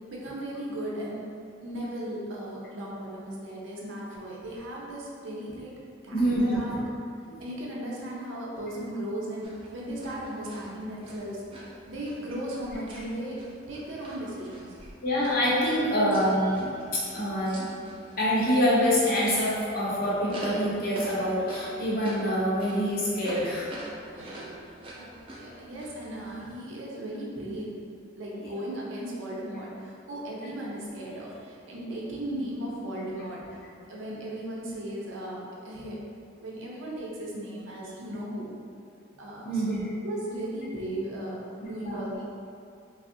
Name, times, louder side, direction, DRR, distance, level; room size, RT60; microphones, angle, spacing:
voice 1, 0.1-1.2 1.6-5.7 6.0-6.2 6.4-6.8 7.4-9.5 9.7-11.4 11.9-13.4 13.7-14.7 24.1-27.7 28.1-36.0 36.4-38.5 39.2-39.7 40.0-42.2, right 1 dB, 80° right, -4 dB, 0.6 m, -36 dB
voice 2, 6.1-6.6 7.3-7.4 15.0-17.6 18.2-23.7 26.2-26.3 28.4-28.5 39.4-39.8 41.6-42.0, equal, 50° left, -7 dB, 0.7 m, -26 dB
sound 1, 9.4-26.5, right 1 dB, 25° right, 0.4 m, -45 dB
3.4 x 2.0 x 2.6 m, 2.4 s
head